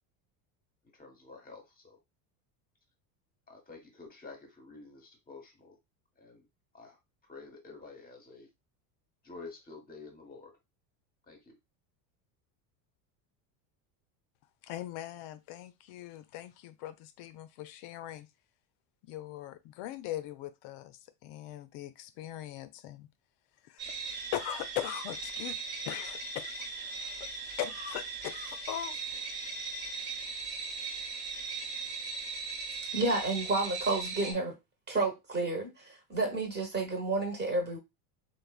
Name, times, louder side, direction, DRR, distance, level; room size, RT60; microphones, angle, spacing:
voice 1, 0.9-2.0 3.5-5.8 6.2-6.5 6.7-7.0 7.2-8.5 9.2-10.5 11.3-11.6, left 3 dB, 20° left, 0.9 m, -49 dB
voice 2, 14.6-18.3 19.0-23.1 23.6-23.8 24.3-25.6 25.9-27.3 27.6-29.3, left 12 dB, 55° left, 0.5 m, -40 dB
sound 1, 23.8-34.3, right 4 dB, 55° right, 1.2 m, -38 dB
voice 3, 32.9-34.6 34.9-37.8, right 2 dB, 20° right, 1.0 m, -31 dB
3.2 x 2.2 x 2.3 m
supercardioid pair, 110°, 49 cm